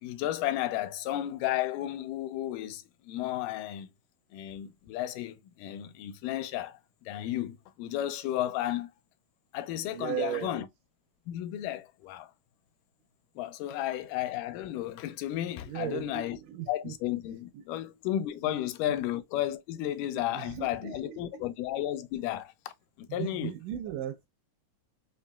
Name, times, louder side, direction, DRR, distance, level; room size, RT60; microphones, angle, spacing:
voice 1, 0.0-3.9 4.3-6.8 7.1-8.9 9.5-10.6 11.3-12.3 13.4-16.4 16.7-22.5 23.0-23.5, left 13 dB, 85° left, 2.1 m, -33 dB
voice 2, 9.9-10.6 15.7-17.0 17.5-17.7 18.4-18.5 18.8-19.0 20.1-21.4 23.1-24.3, right 12 dB, 85° right, 2.1 m, -37 dB
5.2 x 2.8 x 2.2 m
omnidirectional pair, 3.6 m